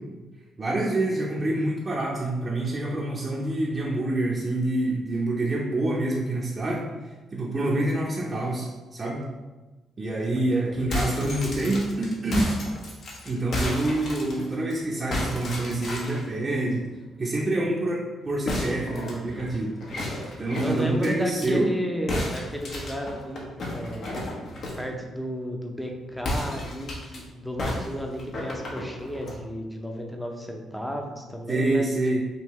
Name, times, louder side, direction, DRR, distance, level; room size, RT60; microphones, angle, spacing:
voice 1, 0.6-6.9 7.3-9.2 10.0-12.5 13.2-16.9 17.2-19.7 20.4-21.7 31.5-32.2, right 2 dB, 35° right, -5 dB, 0.8 m, -26 dB
voice 2, 10.4-10.8 19.9-20.2 20.6-24.2 24.8-31.9, equal, 5° left, 2 dB, 0.7 m, -33 dB
sound 1, 10.7-14.7 15.1-16.3 18.5-21.5 22.1-24.9 26.2-27.2 27.6-29.4, left 1 dB, 60° left, 1.0 m, -32 dB
5.4 x 2.7 x 3.1 m, 1.2 s
cardioid pair, 90°, 0 cm